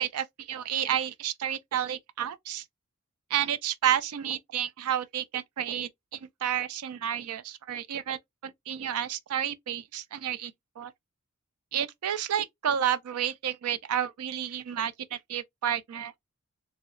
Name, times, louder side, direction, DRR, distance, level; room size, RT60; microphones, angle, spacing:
voice 1, 0.0-2.6 3.3-10.9 11.7-16.1, right 10 dB, 90° right, 0.4 m, -31 dB
3.0 x 2.8 x 2.4 m
head